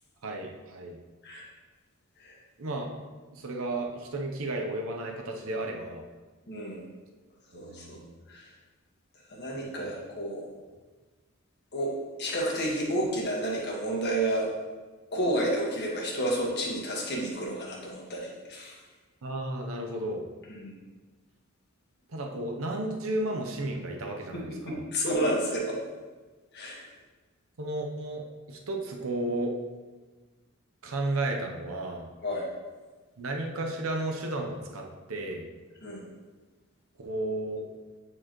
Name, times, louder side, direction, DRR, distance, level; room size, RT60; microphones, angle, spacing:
voice 1, 0.2-1.0 2.6-2.9 3.3-6.0 7.5-8.2 9.6-9.8 19.2-20.2 22.1-24.9 27.6-29.6 30.8-32.1 33.2-35.5 37.0-37.6, right 2 dB, 70° right, 1 dB, 0.8 m, -33 dB
voice 2, 6.5-6.8 7.5-8.0 8.3-8.5 9.3-10.4 11.7-11.9 12.2-14.5 15.1-18.8 20.5-20.7 24.3-25.8 26.5-26.9 32.2-32.4 35.8-36.0, right 1 dB, 50° left, -2 dB, 1.5 m, -30 dB
8.7 x 4.7 x 3.0 m, 1.3 s
head